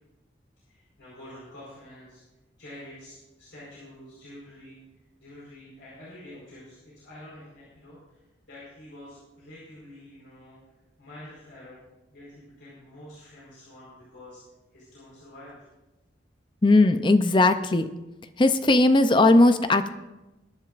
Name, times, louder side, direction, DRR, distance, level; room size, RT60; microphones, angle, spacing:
voice 1, 0.7-2.2 2.6-4.8 5.2-8.2 8.5-10.6 11.0-11.8 12.1-14.4 14.7-15.6, left 1 dB, 90° left, -7 dB, 4.5 m, -47 dB
voice 2, 16.6-17.9 18.4-19.9, left 2 dB, 25° left, 10 dB, 0.5 m, -18 dB
21.5 x 10.5 x 2.5 m, 1.0 s
head